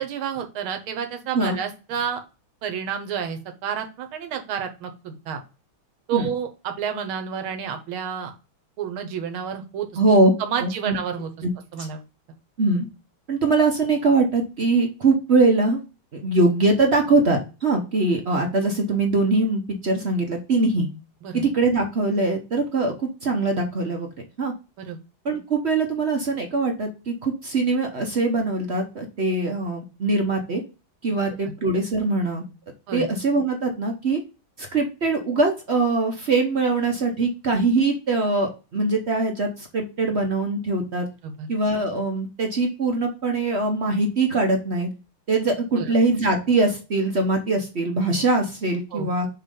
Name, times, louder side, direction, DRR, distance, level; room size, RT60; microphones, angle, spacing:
voice 1, 0.0-2.2 2.6-5.4 6.1-8.3 8.8-9.9 10.4-11.3 11.7-12.0 21.2-21.4 24.8-25.0 32.9-33.1 41.2-41.5 45.7-45.9 48.9-49.1, right 8 dB, 90° right, 6 dB, 1.9 m, -30 dB
voice 2, 9.9-10.3 10.6-11.0 12.6-12.9 13.3-15.8 16.1-20.9 21.3-24.1 24.4-24.5 25.2-30.6 31.0-32.4 32.9-34.2 34.6-41.1 41.5-44.9 45.3-49.3, right 3 dB, 50° right, 3 dB, 0.8 m, -22 dB
6.7 x 3.0 x 5.3 m, 0.31 s
omnidirectional pair, 2.2 m